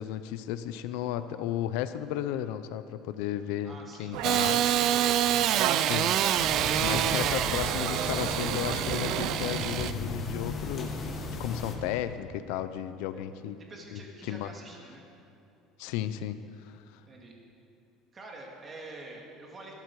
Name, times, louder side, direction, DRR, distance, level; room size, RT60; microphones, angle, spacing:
voice 1, 0.0-4.6 4.9-5.0 5.8-6.1 6.8-13.6 13.9-14.5 15.8-17.0, left 11 dB, 75° left, 12 dB, 0.6 m, -34 dB
voice 2, 3.6-4.9 13.1-13.3 13.6-15.1 17.1-17.4 18.1-19.7, right 2 dB, 20° right, 0 dB, 2.2 m, -47 dB
sound 1, 4.1-9.3, right 10 dB, 65° right, 0.8 m, -36 dB
Engine starting / Sawing, 4.2-9.9, right 11 dB, 45° right, 0.5 m, -27 dB
sound 2, 6.4-11.8, left 3 dB, 25° left, 1.5 m, -36 dB
20.0 x 12.5 x 4.8 m, 2.6 s
cardioid pair, 170°, 0 cm